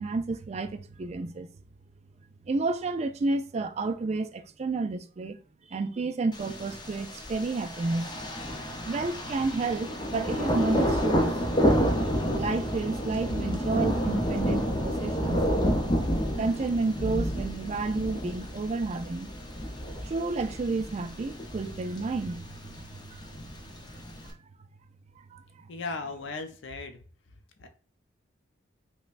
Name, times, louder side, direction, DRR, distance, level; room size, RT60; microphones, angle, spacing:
voice 1, 0.0-1.5 2.5-5.4 5.7-8.1 8.8-11.3 12.4-15.5 16.4-19.3 20.0-22.5 23.1-23.3 25.3-25.7, right 3 dB, 35° right, 0.3 m, -31 dB
Thunder, 6.3-24.3, equal, 20° left, 0.6 m, -30 dB
voice 2, 25.7-27.0 27.6-27.7, left 3 dB, 65° left, 0.5 m, -36 dB
5.3 x 2.2 x 2.5 m
head